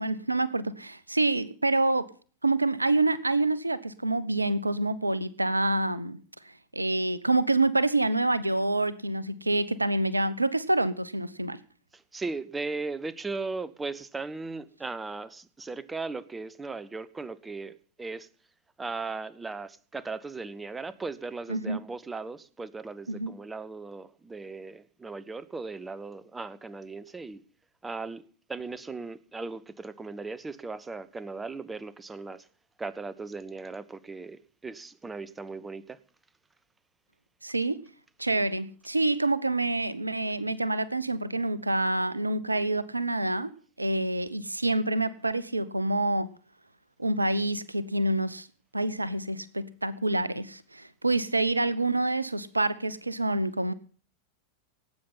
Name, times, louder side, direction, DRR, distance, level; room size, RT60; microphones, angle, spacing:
voice 1, 0.0-2.1 2.4-6.2 6.7-11.6 21.5-21.8 23.1-23.3 37.4-37.8 38.2-46.3 47.0-48.5 48.7-53.7, right 2 dB, 85° right, 18 dB, 0.7 m, -27 dB
voice 2, 12.1-18.3 18.8-27.4 27.8-28.2 28.5-32.4 32.8-36.0, right 3 dB, 10° right, 16 dB, 1.0 m, -37 dB
18.0 x 8.9 x 5.6 m, 0.42 s
figure-of-eight pair, 90°, 0 cm